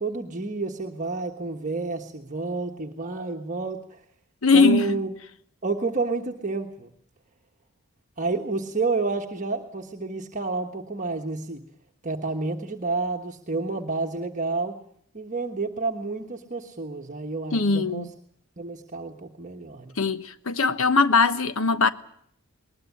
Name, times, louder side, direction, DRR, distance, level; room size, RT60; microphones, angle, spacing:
voice 1, 0.0-4.0 4.5-5.1 5.6-6.9 8.2-11.6 12.0-14.7 15.1-18.1 18.6-20.0, right 3 dB, 35° right, 1.4 m, -30 dB
voice 2, 4.4-4.9 17.5-18.1 20.0-21.9, left 4 dB, 65° left, 1.2 m, -20 dB
21.0 x 20.0 x 8.6 m
head